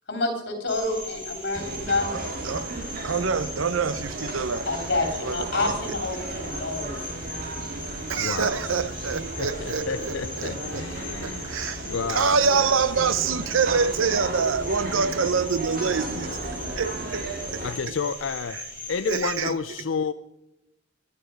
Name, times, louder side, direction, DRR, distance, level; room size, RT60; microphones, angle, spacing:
voice 1, 0.1-2.2 4.7-7.0, left 2 dB, 60° left, 3.1 m, -28 dB
Cricket, 0.7-19.4, equal, 10° right, 7.9 m, -39 dB
sound 1, 1.5-17.7, right 2 dB, 45° right, 2.2 m, -35 dB
voice 2, 2.1-2.7 3.0-5.0 5.2-6.0 8.1-10.9 11.2-16.4 16.8-17.6 17.9-18.0 18.5-18.6 19.1-19.5, right 5 dB, 90° right, 0.7 m, -26 dB
voice 3, 8.2-8.6 9.4-11.6 11.8-12.4 17.6-18.6 18.9-20.1, left 5 dB, 75° left, 0.5 m, -30 dB
19.5 x 11.5 x 5.2 m
head